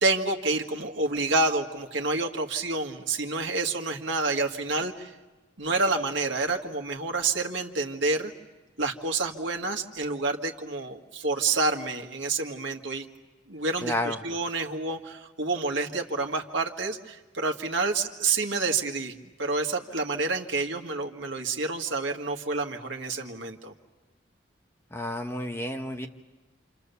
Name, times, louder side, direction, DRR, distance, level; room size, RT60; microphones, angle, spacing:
voice 1, 0.0-5.1 5.6-8.3 8.8-13.1 13.5-23.7, right 3 dB, 70° right, 3 dB, 1.8 m, -28 dB
voice 2, 13.8-14.2 24.9-26.1, left 1 dB, 15° left, 4 dB, 1.1 m, -31 dB
28.0 x 27.5 x 7.0 m, 1.1 s
head